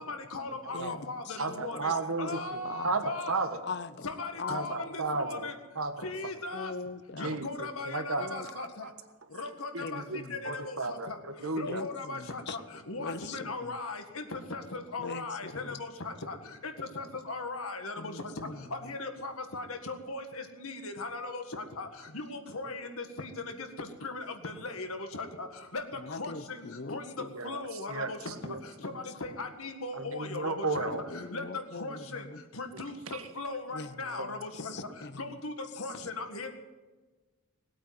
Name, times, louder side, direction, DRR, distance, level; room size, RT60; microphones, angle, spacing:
voice 1, 0.1-1.9 2.2-3.4 4.0-5.5 6.0-6.7 7.2-8.7 9.4-10.0 10.3-10.6 11.5-12.6 12.9-15.9 16.3-16.4 17.0-18.1 18.8-20.2 20.6-21.4 21.8-21.9 22.1-22.9 23.2-23.3 24.0-24.9 25.1-25.5 25.7-25.8 26.2-26.6 26.9-27.0 27.4-28.2 29.0-30.9 31.3-31.4 31.8-32.2 32.6-33.0 33.4-34.7 35.2-35.5 35.8-36.5, left 3 dB, 75° left, 5 dB, 1.8 m, -38 dB
voice 2, 0.7-2.9 3.6-4.1 4.4-4.6 4.9-5.0 6.5-7.4 8.2-8.5 9.8-10.4 11.6-12.6 13.0-13.7 15.0-15.8 18.0-18.6 26.0-27.3 28.8-28.9 30.8-32.4 33.7-34.2 34.5-35.3, left 4 dB, 50° left, 14 dB, 0.7 m, -42 dB
voice 3, 1.4-3.6 4.5-6.1 7.2-7.5 7.8-8.9 9.7-10.2 10.4-11.8 27.3-27.6 27.9-28.1 28.4-28.6 29.9-31.0 33.1-33.2 34.2-34.3, right 3 dB, 75° right, 8 dB, 1.5 m, -34 dB
19.5 x 8.7 x 7.7 m, 1.3 s
head